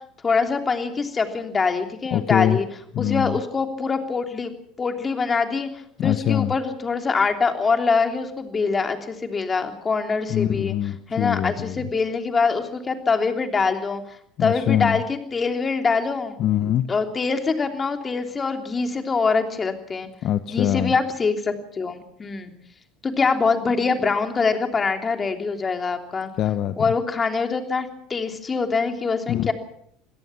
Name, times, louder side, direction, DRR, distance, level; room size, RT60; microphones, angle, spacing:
voice 1, 0.2-2.7 3.0-4.5 4.8-5.7 6.0-10.7 11.1-14.0 14.4-16.4 16.9-20.1 20.5-22.5 23.0-26.3 26.8-29.5, left 4 dB, 25° left, 5 dB, 3.2 m, -24 dB
voice 2, 2.1-2.6 2.9-3.4 6.0-6.6 10.3-11.9 14.4-15.0 16.4-16.9 20.2-20.9 26.4-26.9 29.3-29.5, left 11 dB, 50° left, 12 dB, 1.0 m, -23 dB
26.5 x 17.5 x 5.9 m, 0.66 s
hypercardioid pair, 75°, 0 cm